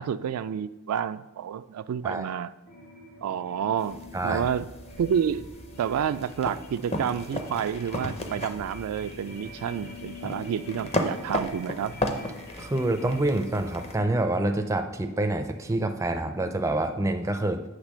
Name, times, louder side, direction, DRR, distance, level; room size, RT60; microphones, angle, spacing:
voice 1, 0.0-2.5 3.2-4.0 4.2-4.7 5.0-5.5 5.8-11.9, right 8 dB, 85° right, 15 dB, 0.3 m, -29 dB
sound 1, 2.6-16.6, left 2 dB, 50° left, 2.2 m, -46 dB
sound 2, 3.8-14.0, left 1 dB, 30° left, 0.6 m, -35 dB
voice 2, 4.1-4.5 12.6-17.6, right 1 dB, 15° right, 6 dB, 0.4 m, -27 dB
8.2 x 3.3 x 6.1 m, 1.0 s
head